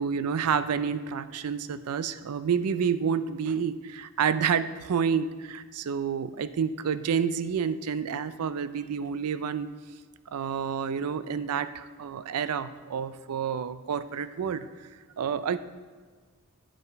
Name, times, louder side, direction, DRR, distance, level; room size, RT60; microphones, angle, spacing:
voice 1, 0.0-9.7 10.3-14.7 15.2-15.6, right 7 dB, 85° right, 13 dB, 0.4 m, -29 dB
9.8 x 5.6 x 4.6 m, 1.5 s
head